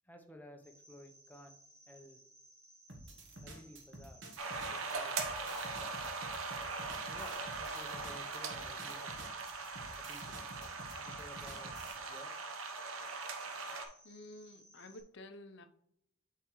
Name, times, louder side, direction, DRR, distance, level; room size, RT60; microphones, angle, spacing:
voice 1, 0.1-1.6 1.9-2.2 3.4-5.8 7.1-9.1 10.0-10.3 11.0-11.7 12.1-12.4, equal, 10° left, 0.6 m, -55 dB
Cricket, 0.6-15.0, right 1 dB, 10° right, 1.2 m, -61 dB
sound 1, 2.9-12.0, right 2 dB, 55° right, 1.1 m, -51 dB
sound 2, 4.4-13.9, right 4 dB, 75° right, 0.8 m, -41 dB
voice 2, 14.0-15.7, left 2 dB, 55° left, 0.6 m, -51 dB
7.6 x 4.6 x 3.1 m
head